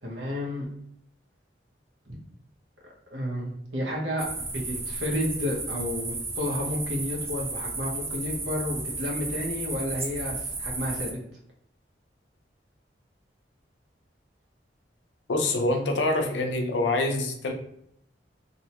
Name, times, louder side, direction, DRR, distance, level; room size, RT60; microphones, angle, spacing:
voice 1, 0.0-0.6 2.1-2.2 3.1-11.2, left 1 dB, 85° right, -2 dB, 0.9 m, -31 dB
sound 1, 4.2-11.1, right 3 dB, 15° right, 0.3 m, -33 dB
voice 2, 15.3-17.5, left 2 dB, 80° left, 4 dB, 0.5 m, -25 dB
2.7 x 2.2 x 2.8 m, 0.71 s
head